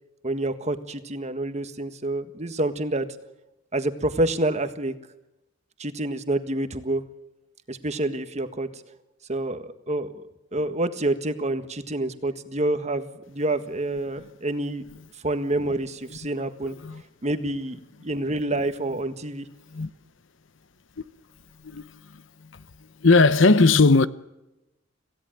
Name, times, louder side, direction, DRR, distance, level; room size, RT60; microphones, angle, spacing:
voice 1, 0.2-3.1 3.7-4.9 5.8-7.0 7.7-8.7 9.3-10.3 10.5-14.8 15.2-16.8 17.2-17.8 18.0-19.5, right 1 dB, 35° right, 1.6 m, -27 dB
voice 2, 16.6-17.0 19.7-19.9 21.6-22.6 23.0-24.1, left 3 dB, 70° left, 0.9 m, -19 dB
27.5 x 17.0 x 9.2 m
head